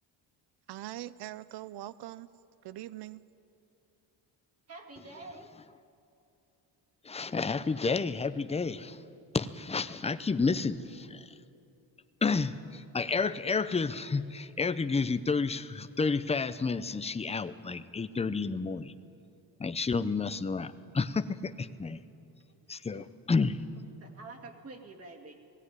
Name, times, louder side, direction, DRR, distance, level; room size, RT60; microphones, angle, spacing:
voice 1, 0.7-2.3 2.6-3.2, right 14 dB, 65° right, 17 dB, 0.6 m, -42 dB
voice 2, 4.7-5.6 22.7-23.1 24.0-25.4, right 3 dB, 35° right, 2 dB, 2.3 m, -48 dB
voice 3, 7.0-9.0 9.3-11.3 12.2-18.9 19.6-22.0 22.7-23.6, left 4 dB, 15° left, 12 dB, 0.6 m, -30 dB
18.5 x 16.5 x 9.6 m, 2.8 s
cardioid pair, 125°, 43 cm